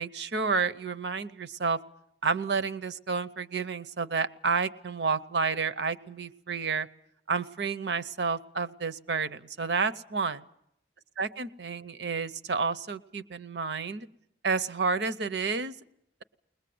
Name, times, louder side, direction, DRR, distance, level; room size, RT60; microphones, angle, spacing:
voice 1, 0.0-1.8 2.2-6.9 7.3-10.4 11.2-14.1 14.4-15.8, right 4 dB, 75° right, 14 dB, 0.8 m, -30 dB
21.5 x 20.0 x 7.8 m, 0.75 s
head